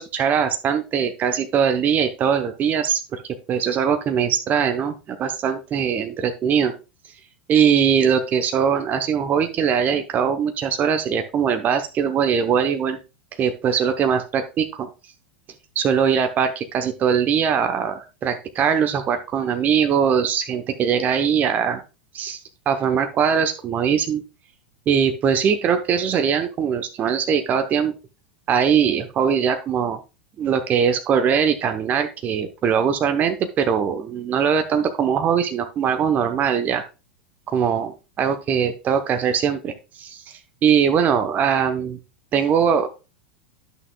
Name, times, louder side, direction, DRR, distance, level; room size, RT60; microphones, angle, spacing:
voice 1, 0.0-3.0 3.5-6.7 7.5-13.0 13.4-14.9 15.8-21.8 22.1-22.4 22.7-24.2 24.9-27.9 28.5-30.0 30.4-36.8 37.5-37.9 38.2-40.2 40.6-42.0 42.3-42.9, right 7 dB, 30° right, 7 dB, 0.8 m, -21 dB
11.0 x 6.2 x 2.3 m, 0.30 s
hypercardioid pair, 95°, 5 cm